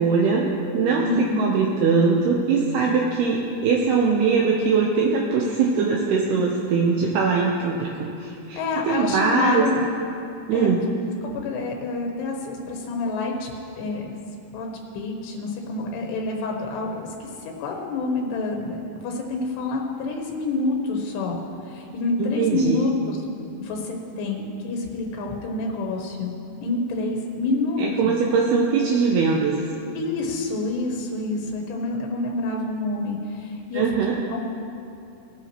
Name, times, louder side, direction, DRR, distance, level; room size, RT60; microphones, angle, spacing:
voice 1, 0.0-8.6 8.8-9.7 10.5-10.9 22.2-22.9 27.8-29.7 33.7-34.2, right 5 dB, 75° right, -2 dB, 2.7 m, -21 dB
voice 2, 1.0-1.5 8.6-9.8 10.5-10.7 11.3-13.5 13.8-14.2 14.5-14.7 14.9-17.3 17.6-21.4 21.7-23.2 23.6-26.4 26.6-28.1 30.0-33.9 34.3-34.4, left 3 dB, 80° left, 1 dB, 3.1 m, -27 dB
19.0 x 10.0 x 3.0 m, 2.6 s
omnidirectional pair, 4.9 m